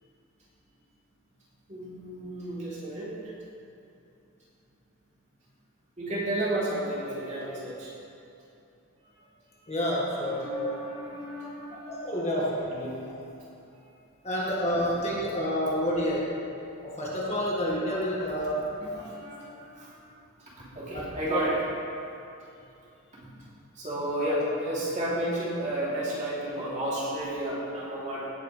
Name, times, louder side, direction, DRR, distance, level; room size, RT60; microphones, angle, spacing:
voice 1, 1.7-3.3 6.0-7.9 9.0-9.2 9.6-9.7 10.1-12.1 13.7-13.9 18.8-20.1 20.6-21.6 21.9-22.1 23.7-28.3, right 1 dB, 35° right, -8 dB, 2.9 m, -32 dB
voice 2, 9.7-10.8 11.7-13.2 14.2-16.4 16.8-18.7 21.3-21.4, equal, 30° left, -5 dB, 1.7 m, -29 dB
17.0 x 9.1 x 3.3 m, 2.7 s
head